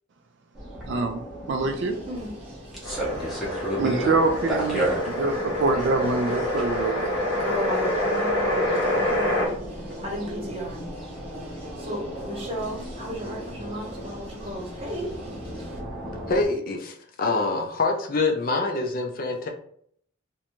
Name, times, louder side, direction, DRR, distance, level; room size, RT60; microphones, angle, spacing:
sound 1, 0.5-16.5, right 1 dB, ahead, 0.6 m, -34 dB
voice 1, 0.9-1.2 1.5-1.9 3.8-7.1, right 3 dB, 60° right, 5 dB, 0.3 m, -25 dB
voice 2, 1.7-3.8 4.6-15.8, equal, 30° right, -4 dB, 0.8 m, -36 dB
sound 2, 2.8-9.5, left 1 dB, 85° left, 0.8 m, -27 dB
voice 3, 16.3-19.5, left 3 dB, 45° left, 3 dB, 0.4 m, -25 dB
2.5 x 2.1 x 2.9 m, 0.63 s
head